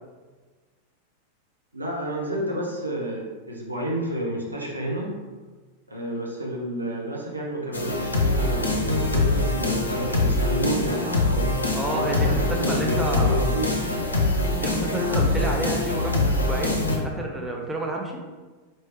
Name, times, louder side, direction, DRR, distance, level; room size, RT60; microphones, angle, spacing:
voice 1, 1.7-5.1 5.9-13.9 15.0-15.3, right 1 dB, 80° right, -2 dB, 0.8 m, -30 dB
sound 1, 7.7-17.0, left 2 dB, 80° left, 0.6 m, -24 dB
voice 2, 11.7-13.5 14.5-18.2, right 2 dB, 10° right, 0 dB, 0.6 m, -30 dB
4.4 x 3.1 x 3.3 m, 1.3 s
figure-of-eight pair, 90°, 0 cm